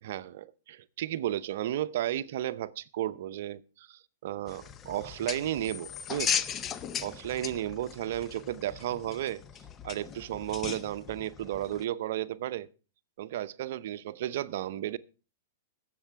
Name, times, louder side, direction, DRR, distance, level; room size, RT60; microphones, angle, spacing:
voice 1, 0.0-6.4 7.0-9.4 9.8-12.7 13.2-15.0, right 12 dB, 65° right, 0.7 m, -33 dB
sound 1, 4.5-11.8, left 8 dB, 25° left, 0.6 m, -37 dB
22.0 x 7.6 x 3.4 m
hypercardioid pair, 130°, 0 cm